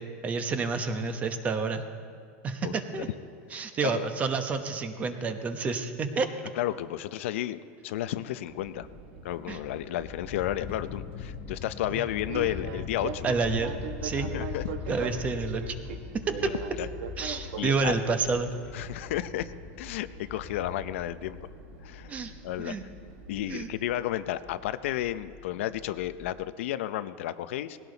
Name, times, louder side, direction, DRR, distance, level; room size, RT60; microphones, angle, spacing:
voice 1, 0.2-1.8 2.4-3.1 3.5-6.3 9.5-9.6 13.2-13.7 14.0-14.3 14.9-15.7 16.3-16.5 17.2-18.5 22.1-22.3 22.6-22.8 23.5-23.7, right 4 dB, 20° right, 8 dB, 0.9 m, -29 dB
voice 2, 2.6-3.0 3.8-4.0 6.5-8.9 9.2-13.3 14.1-14.6 16.4-16.5 16.8-16.9 17.6-17.9 18.7-19.5 19.8-21.4 21.8-22.7 23.3-27.8, left 13 dB, 75° left, 12 dB, 0.6 m, -32 dB
Fixed-wing aircraft airplane, 8.5-23.9, right 7 dB, 70° right, 1.2 m, -43 dB
sound 1, 8.7-26.4, left 8 dB, 25° left, 0.7 m, -42 dB
19.5 x 16.5 x 4.0 m, 2.3 s
supercardioid pair, 155°, 7 cm